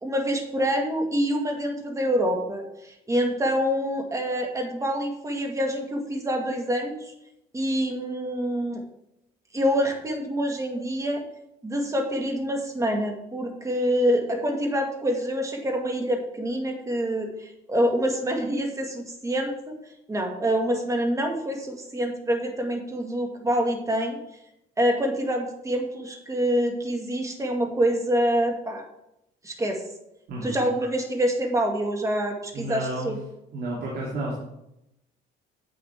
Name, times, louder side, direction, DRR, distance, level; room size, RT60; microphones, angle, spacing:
voice 1, 0.0-7.1 7.5-8.8 9.5-11.3 11.6-19.8 20.1-24.2 24.8-28.8 29.4-29.8 30.4-33.2, equal, 20° right, 3 dB, 1.9 m, -26 dB
voice 2, 30.3-30.6 32.5-33.1 33.5-34.3, right 2 dB, 70° right, -4 dB, 2.7 m, -31 dB
9.2 x 8.3 x 3.6 m, 0.85 s
cardioid pair, 110°, 17 cm